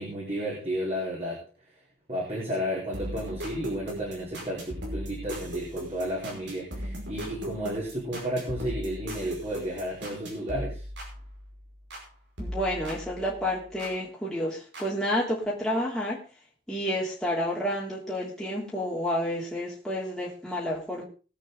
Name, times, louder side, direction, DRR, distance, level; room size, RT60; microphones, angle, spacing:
voice 1, 0.0-1.4 2.1-10.8, equal, 35° right, -5 dB, 4.5 m, -32 dB
sound 1, 2.9-12.1 12.4-14.0 14.7-14.8, equal, 80° right, 5.5 m, -38 dB
voice 2, 12.4-16.2 16.7-21.0, equal, ahead, -6 dB, 3.2 m, -30 dB
20.5 x 8.3 x 4.0 m, 0.36 s
head